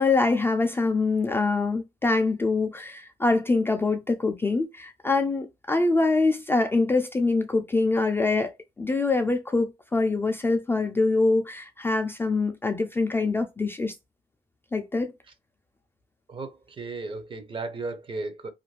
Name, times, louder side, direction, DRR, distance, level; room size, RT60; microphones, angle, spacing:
voice 1, 0.0-8.5 8.8-13.9 14.7-15.1, left 3 dB, 15° left, 0.4 m, -24 dB
voice 2, 16.3-18.5, right 3 dB, 30° right, 0.6 m, -35 dB
2.5 x 2.2 x 3.1 m
cardioid pair, 110°, 17 cm